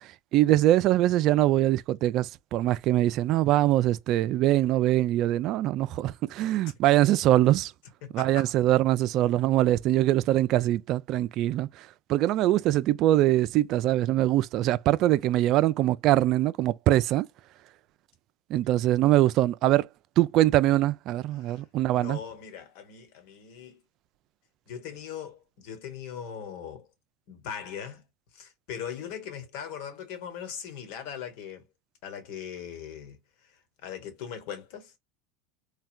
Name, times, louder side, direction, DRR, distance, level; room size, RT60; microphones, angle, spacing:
voice 1, 0.3-7.7 8.1-11.7 12.1-17.3 18.5-19.9 20.2-22.2, right 14 dB, 50° right, 0.3 m, -23 dB
voice 2, 8.0-8.5 21.3-21.6 21.9-23.8 24.7-26.9 27.3-28.0 28.3-31.6 32.0-33.5 33.8-35.0, left 8 dB, 65° left, 1.1 m, -40 dB
3.2 x 2.2 x 2.4 m
supercardioid pair, 110°, 0 cm